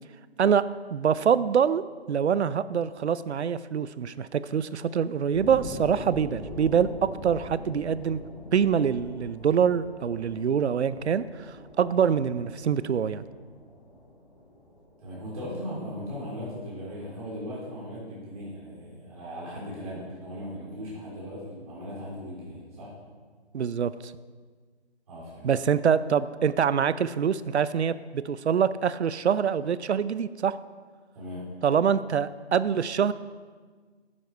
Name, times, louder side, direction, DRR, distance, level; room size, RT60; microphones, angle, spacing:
voice 1, 0.4-8.2 8.5-11.2 11.8-13.2 23.5-24.1 25.4-30.6 31.6-33.1, right 7 dB, 80° right, 16 dB, 0.6 m, -25 dB
sound 1, 5.3-16.3 16.8-16.9, left 1 dB, ahead, 1.5 m, -44 dB
voice 2, 15.0-22.9 25.1-25.5 31.1-31.5, equal, 35° right, -6 dB, 3.4 m, -38 dB
10.0 x 9.6 x 4.6 m, 1.5 s
hypercardioid pair, 165°, 33 cm